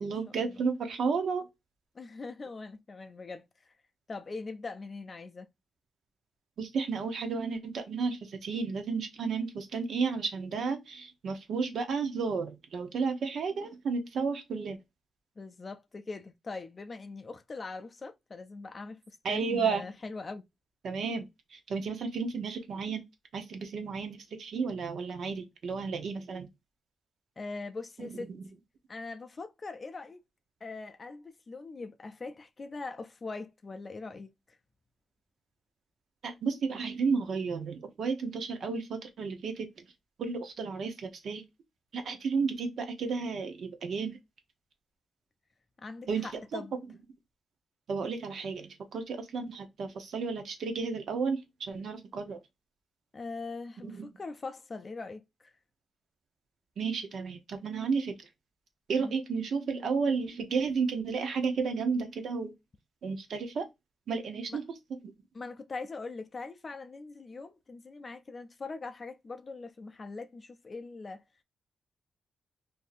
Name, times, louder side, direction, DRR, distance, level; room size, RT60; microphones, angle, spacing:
voice 1, 0.0-1.5 6.6-14.8 19.2-19.9 20.8-23.0 23.3-26.5 28.0-28.4 36.2-39.8 40.2-41.4 41.9-44.2 46.1-46.6 47.9-52.4 53.8-54.1 56.8-58.1 58.9-62.5 63.0-63.7 64.1-64.6 64.9-65.0, right 5 dB, 65° right, 0.7 m, -32 dB
voice 2, 1.9-3.7 4.1-5.5 15.4-20.4 27.4-28.3 28.9-30.2 30.6-34.6 45.8-46.8 53.1-55.5 59.0-59.1 64.5-64.6 65.3-71.2, left 3 dB, 30° left, 0.4 m, -42 dB
2.6 x 2.5 x 4.0 m
wide cardioid pair, 160°, 0 cm